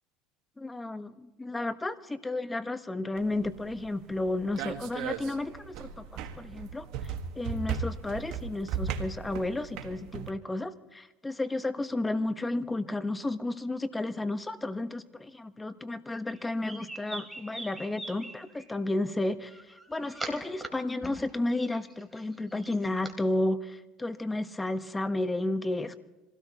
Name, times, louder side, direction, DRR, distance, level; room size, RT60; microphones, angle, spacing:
voice 1, 0.6-26.0, left 2 dB, 15° left, 10 dB, 1.2 m, -32 dB
sound 1, 3.2-10.3, right 7 dB, 65° right, 1.7 m, -37 dB
sound 2, 16.3-18.7 19.5-20.7 21.0-23.1, right 2 dB, 5° right, 3.4 m, -42 dB
26.0 x 17.0 x 3.0 m, 1.1 s
supercardioid pair, 95°, 0 cm